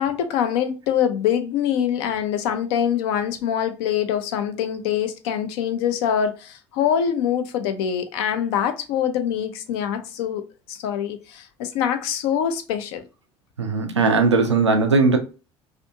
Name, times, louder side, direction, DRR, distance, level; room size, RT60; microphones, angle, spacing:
voice 1, 0.0-10.4 10.7-13.0, left 9 dB, 65° left, 0.5 m, -24 dB
voice 2, 13.6-15.2, right 4 dB, 90° right, 0.4 m, -18 dB
2.6 x 2.5 x 2.6 m
figure-of-eight pair, 60°, 14 cm